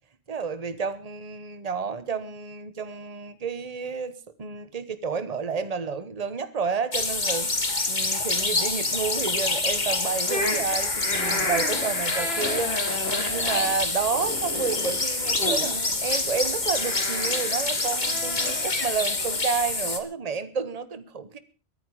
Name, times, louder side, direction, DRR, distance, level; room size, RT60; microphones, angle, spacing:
voice 1, 0.3-7.5 7.9-21.4, right 5 dB, 35° right, 1.2 m, -30 dB
sound 1, 6.9-20.0, left 3 dB, 40° left, 2.0 m, -27 dB
sound 2, 10.3-19.4, left 2 dB, 60° left, 3.3 m, -33 dB
22.5 x 9.5 x 4.8 m
omnidirectional pair, 1.2 m